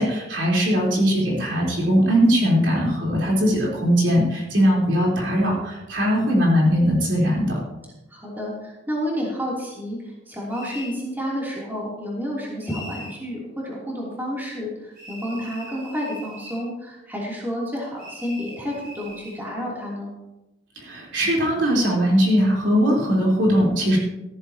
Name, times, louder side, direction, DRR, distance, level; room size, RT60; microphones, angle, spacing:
voice 1, 0.0-7.6 20.8-24.0, equal, 70° right, -3 dB, 3.9 m, -20 dB
voice 2, 8.1-20.1, equal, 10° right, -5 dB, 3.1 m, -30 dB
sound 1, 10.5-11.0 12.6-13.2 15.0-16.7 18.0-19.4, equal, 55° right, 5.0 m, -41 dB
14.5 x 13.5 x 2.9 m, 0.97 s
head